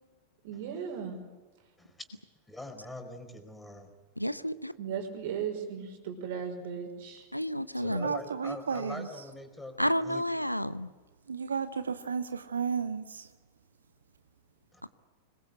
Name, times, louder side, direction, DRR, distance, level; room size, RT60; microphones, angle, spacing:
voice 1, 0.4-1.2 4.8-7.3, right 7 dB, 55° right, 5.7 m, -36 dB
voice 2, 2.5-3.9 7.8-10.2 14.7-14.8, left 2 dB, 5° left, 4.9 m, -43 dB
voice 3, 4.2-4.7 7.3-8.1 9.8-10.9 14.8-14.9, equal, 90° left, 0.8 m, -30 dB
voice 4, 7.8-9.1 11.3-13.0, right 6 dB, 70° right, 0.9 m, -33 dB
26.5 x 21.5 x 8.3 m
figure-of-eight pair, 90°, 0 cm